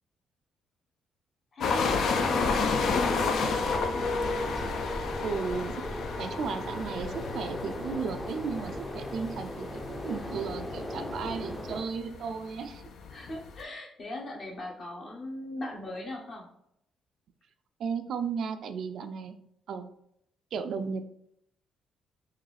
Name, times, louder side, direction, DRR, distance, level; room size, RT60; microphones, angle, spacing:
voice 1, 1.5-4.1 13.1-16.5, left 1 dB, 50° left, -1 dB, 1.1 m, -40 dB
sound 1, 1.6-13.6, left 4 dB, 70° left, 0.4 m, -32 dB
sound 2, 1.8-11.8, left 1 dB, 15° left, 0.5 m, -37 dB
voice 2, 5.2-5.8 6.2-12.9 17.8-19.4 19.7-19.9 20.5-21.1, right 5 dB, 65° right, 9 dB, 0.3 m, -35 dB
3.7 x 2.6 x 3.2 m, 0.74 s
cardioid pair, 90°, 0 cm